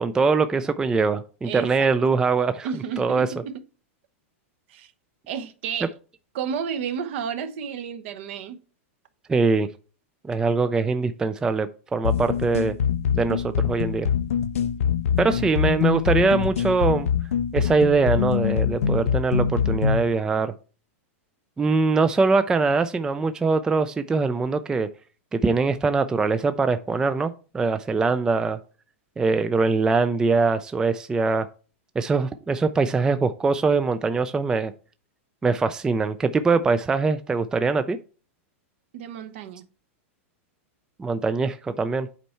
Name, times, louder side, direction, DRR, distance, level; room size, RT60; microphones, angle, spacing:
voice 1, 0.0-2.7 3.0-3.3 9.3-9.7 10.3-12.7 13.1-14.1 15.2-17.1 17.5-20.5 21.6-24.9 25.3-28.6 29.2-31.5 32.0-34.7 35.4-38.0 41.0-42.1, right 4 dB, 10° right, 0.3 m, -22 dB
voice 2, 1.4-1.9 2.6-3.5 4.7-4.9 5.3-5.9 6.3-8.6 15.2-15.4 38.9-39.6, right 7 dB, 60° right, 0.9 m, -32 dB
sound 1, 12.0-20.1, left 8 dB, 90° left, 0.5 m, -24 dB
8.3 x 4.4 x 4.3 m
supercardioid pair, 140°, 7 cm